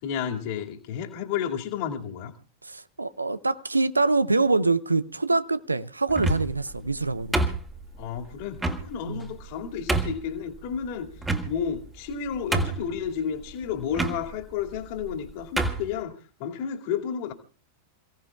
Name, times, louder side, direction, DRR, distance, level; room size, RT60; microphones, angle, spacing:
voice 1, 0.0-2.3 8.0-11.1 11.4-17.3, left 8 dB, 45° left, 2.3 m, -32 dB
voice 2, 2.6-7.4 9.0-9.3, right 3 dB, 80° right, 0.7 m, -25 dB
sound 1, 6.1-6.6 7.3-8.0 8.6-8.8 9.4-9.5 9.9-10.2 11.2-11.8 12.1-12.2 12.5-13.0 13.9-14.2 15.0-15.2 15.6-15.9, right 2 dB, 10° right, 2.0 m, -26 dB
28.5 x 17.0 x 2.3 m
figure-of-eight pair, 90°, 0 cm